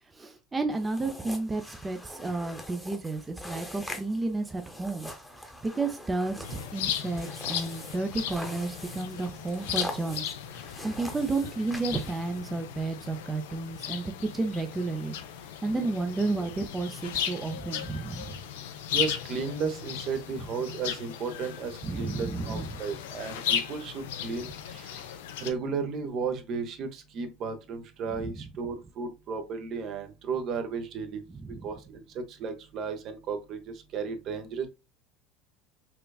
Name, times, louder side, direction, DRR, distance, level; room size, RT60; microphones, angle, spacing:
voice 1, 0.1-15.2 15.6-18.4 21.8-22.8 28.2-28.4 31.3-31.7, right 3 dB, 20° right, 0.5 m, -32 dB
sound 1, 0.7-12.4, left 1 dB, 5° left, 0.9 m, -43 dB
sound 2, 6.4-25.5, left 9 dB, 80° left, 0.4 m, -36 dB
voice 2, 18.9-24.5 24.8-25.0 25.4-31.2 31.6-33.6 33.9-34.7, right 5 dB, 50° right, 0.7 m, -34 dB
4.3 x 2.4 x 2.3 m
hypercardioid pair, 80°, 0 cm